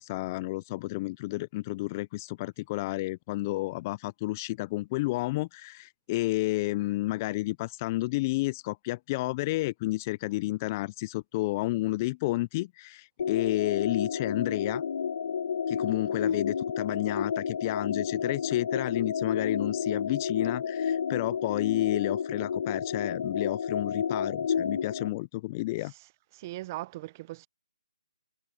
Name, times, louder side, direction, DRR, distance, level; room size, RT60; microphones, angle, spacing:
voice 1, 0.0-14.8 15.7-25.9, left 19 dB, 25° left, 0.7 m, -31 dB
sound 1, 13.2-25.1, left 7 dB, 55° left, 1.4 m, -31 dB
voice 2, 26.3-27.5, right 17 dB, 25° right, 0.9 m, -39 dB
figure-of-eight pair, 150°, 4 cm